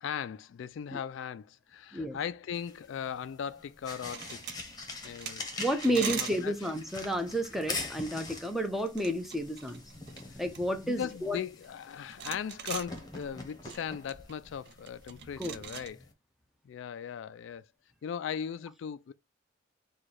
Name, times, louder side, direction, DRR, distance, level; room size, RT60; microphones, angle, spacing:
voice 1, 0.0-4.4 5.0-5.5 5.8-6.5 10.3-10.4 10.8-16.1 16.6-17.7 18.0-19.1, left 8 dB, 70° left, 0.3 m, -38 dB
sound 1, 2.5-16.1, left 3 dB, 20° left, 0.9 m, -44 dB
sound 2, 3.7-15.9, right 8 dB, 55° right, 0.5 m, -44 dB
voice 2, 5.6-9.8 10.4-11.4 15.4-15.5, equal, ahead, 0.6 m, -31 dB
4.8 x 2.3 x 4.2 m
head